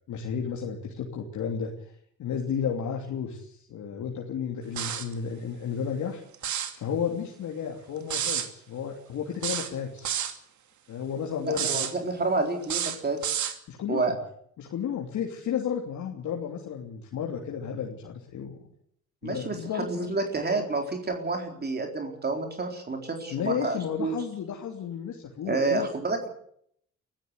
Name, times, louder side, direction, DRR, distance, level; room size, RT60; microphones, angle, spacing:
voice 1, 0.1-1.7 2.2-6.2 6.7-10.1 10.9-11.9 13.7-14.2 14.6-18.6 19.2-20.1 23.3-25.9, left 7 dB, 75° left, 0 dB, 3.1 m, -32 dB
sound 1, 4.8-5.1 6.3-6.8 8.1-8.5 9.4-10.4 11.5-11.9 12.6-13.6, right 9 dB, 70° right, 2.6 m, -29 dB
voice 2, 11.4-13.3 13.9-14.1 19.2-24.2 25.4-26.3, right 3 dB, 35° right, 3 dB, 3.9 m, -29 dB
23.0 x 15.0 x 8.1 m, 0.69 s
cardioid pair, 90°, 30 cm